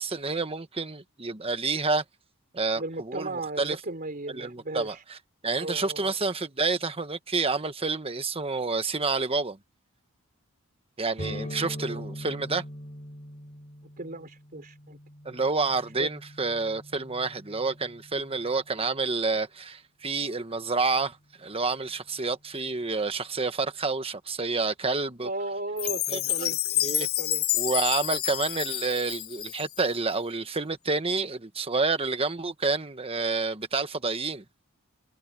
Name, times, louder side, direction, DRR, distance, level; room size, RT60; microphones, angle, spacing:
voice 1, 0.0-2.0 2.5-3.8 4.3-5.2 5.4-9.6 11.0-12.6 15.2-25.3 26.1-26.5 26.8-27.1 27.5-34.4, right 3 dB, 25° right, 1.4 m, -29 dB
voice 2, 2.7-5.0 5.6-6.1 11.4-12.0 14.0-15.0 16.0-16.1 25.2-26.6 27.0-27.4, right 2 dB, 45° right, 3.7 m, -36 dB
sound 1, 11.2-18.8, equal, 35° left, 5.7 m, -42 dB
Chime, 25.8-30.0, left 14 dB, 85° left, 1.7 m, -29 dB
head